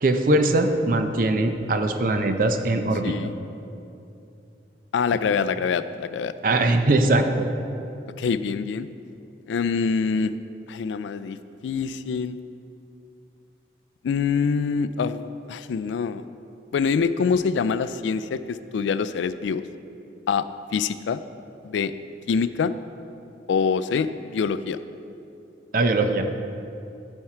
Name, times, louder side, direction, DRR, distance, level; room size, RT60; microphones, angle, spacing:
voice 1, 0.0-3.2 6.4-7.5 25.7-26.3, right 2 dB, 50° right, 7 dB, 0.5 m, -21 dB
voice 2, 4.9-6.3 8.2-8.9 9.5-10.3 10.7-11.4 11.6-12.4 14.0-16.2 16.7-19.6 20.3-20.5 20.7-21.2 21.6-21.9 22.3-22.7 23.5-24.8, left 5 dB, 85° left, 13 dB, 0.3 m, -25 dB
12.0 x 4.5 x 4.5 m, 2.7 s
head